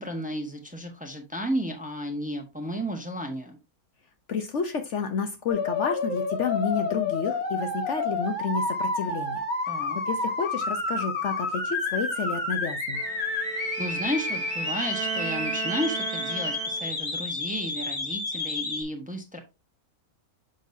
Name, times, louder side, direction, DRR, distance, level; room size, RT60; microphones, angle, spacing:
voice 1, 0.0-3.6 9.7-10.0 13.8-19.4, equal, 5° right, 4 dB, 1.0 m, -33 dB
voice 2, 4.3-9.4 10.1-13.0, left 5 dB, 60° left, 6 dB, 1.0 m, -30 dB
sound 1, 5.5-18.8, left 3 dB, 30° left, 1.7 m, -30 dB
Bowed string instrument, 12.9-17.1, right 11 dB, 80° right, 1.1 m, -36 dB
6.4 x 6.4 x 2.6 m, 0.26 s
omnidirectional pair, 1.6 m